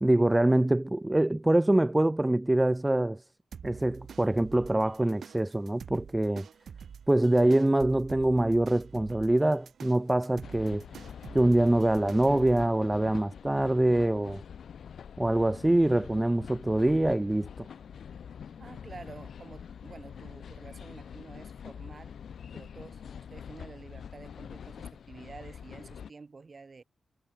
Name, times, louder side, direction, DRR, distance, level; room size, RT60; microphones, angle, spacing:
voice 1, 0.0-3.2 3.6-6.5 7.1-10.8 11.3-14.4 15.2-17.7, right 1 dB, 10° right, 0.6 m, -24 dB
sound 1, 3.5-12.7, right 7 dB, 70° right, 1.7 m, -47 dB
sound 2, 10.4-26.1, left 7 dB, 80° left, 1.8 m, -45 dB
voice 2, 18.6-22.2 22.5-26.8, right 4 dB, 35° right, 6.8 m, -49 dB
wide cardioid pair, 155°, 0 cm